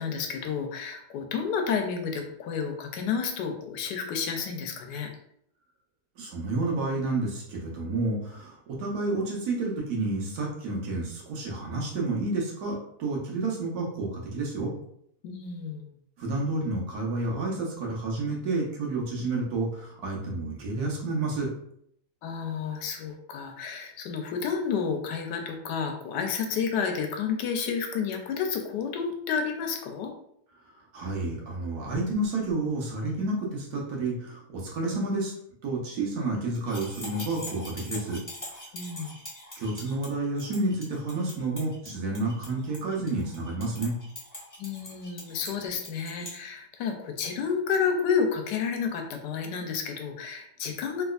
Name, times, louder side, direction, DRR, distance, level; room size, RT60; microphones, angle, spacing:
voice 1, 0.0-5.1 15.2-15.9 22.2-30.1 38.7-39.1 44.6-51.0, left 6 dB, 90° left, 4 dB, 1.2 m, -30 dB
voice 2, 6.2-14.7 16.2-21.5 30.6-35.3 35.6-38.2 39.6-43.9, right 2 dB, 70° right, -2 dB, 1.3 m, -30 dB
sound 1, 36.6-46.4, left 1 dB, 25° left, 0.3 m, -43 dB
3.4 x 2.9 x 2.4 m, 0.70 s
omnidirectional pair, 1.8 m